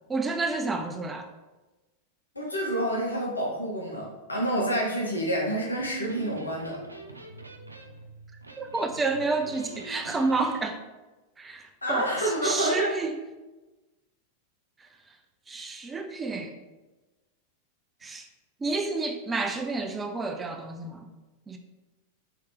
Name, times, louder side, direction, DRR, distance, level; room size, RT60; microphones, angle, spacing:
voice 1, 0.1-1.3 8.6-10.8 11.4-12.1 12.4-13.2 15.5-16.5 18.0-18.3 18.6-21.1 21.5-21.6, right 3 dB, 15° right, 5 dB, 0.4 m, -30 dB
voice 2, 2.3-6.8 11.8-12.9, right 1 dB, 80° left, -2 dB, 0.8 m, -28 dB
Electric guitar, 5.6-10.7, right 3 dB, 85° right, 0.4 m, -43 dB
4.1 x 3.2 x 3.2 m, 1.1 s
figure-of-eight pair, 90°, 0 cm